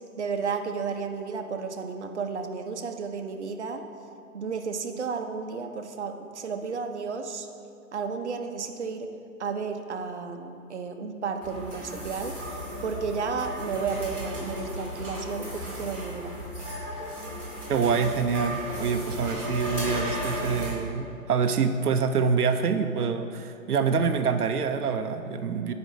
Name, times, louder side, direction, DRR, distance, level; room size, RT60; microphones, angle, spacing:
voice 1, 0.2-3.8 4.3-7.5 7.9-9.1 9.4-12.3 12.8-16.3, right 5 dB, 50° right, 5 dB, 0.7 m, -32 dB
sound 1, 11.4-20.7, equal, 5° left, 1.0 m, -35 dB
voice 2, 17.7-25.7, right 5 dB, 90° right, 7 dB, 0.6 m, -26 dB
8.0 x 5.2 x 5.0 m, 2.6 s
hypercardioid pair, 160°, 44 cm